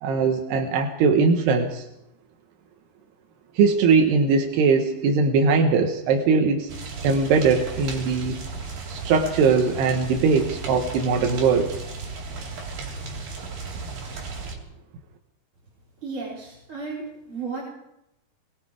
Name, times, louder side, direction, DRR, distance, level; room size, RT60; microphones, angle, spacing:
voice 1, 0.0-1.9 3.6-6.7 7.0-8.4 8.9-11.8, right 4 dB, 85° right, 3 dB, 3.4 m, -20 dB
sound 1, 6.7-14.6, right 4 dB, 60° right, 5.3 m, -35 dB
voice 2, 16.0-17.6, right 4 dB, 30° right, -5 dB, 4.7 m, -34 dB
24.5 x 22.0 x 4.9 m, 0.85 s
omnidirectional pair, 4.6 m